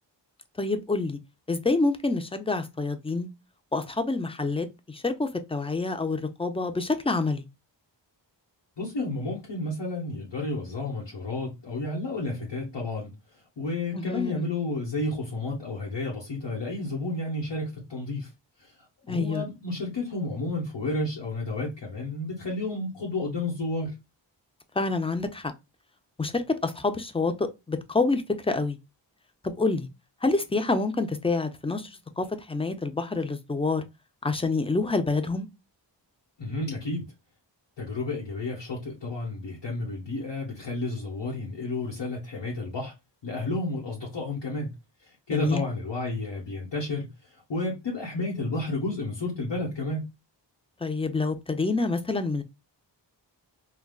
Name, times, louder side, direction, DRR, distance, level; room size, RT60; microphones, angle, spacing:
voice 1, 0.6-1.2 1.5-3.3 3.7-7.4 13.9-14.4 19.1-19.4 24.8-25.5 26.2-28.8 29.4-29.9 30.2-33.8 34.2-35.5 45.3-45.6 50.8-52.4, left 3 dB, 15° left, 0.4 m, -27 dB
voice 2, 8.8-13.1 13.6-18.3 18.6-18.7 19.1-23.9 36.4-37.1 37.8-42.9 43.2-44.7 45.0-47.1 47.5-50.1, left 2 dB, 70° left, 1.1 m, -31 dB
3.5 x 2.3 x 2.3 m
wide cardioid pair, 75°, 45 cm